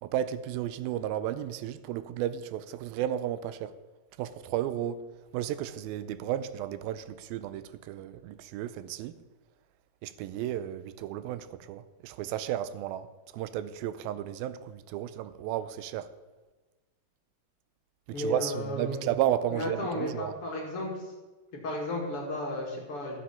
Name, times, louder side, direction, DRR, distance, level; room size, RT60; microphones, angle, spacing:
voice 1, 0.0-3.7 4.2-5.0 5.3-9.1 10.0-13.1 13.3-16.1 18.2-20.3, right 11 dB, 90° right, 2.5 m, -33 dB
voice 2, 18.1-19.0 19.5-21.1 21.5-23.2, left 1 dB, 45° left, 2.4 m, -34 dB
13.5 x 7.6 x 5.7 m
omnidirectional pair, 4.1 m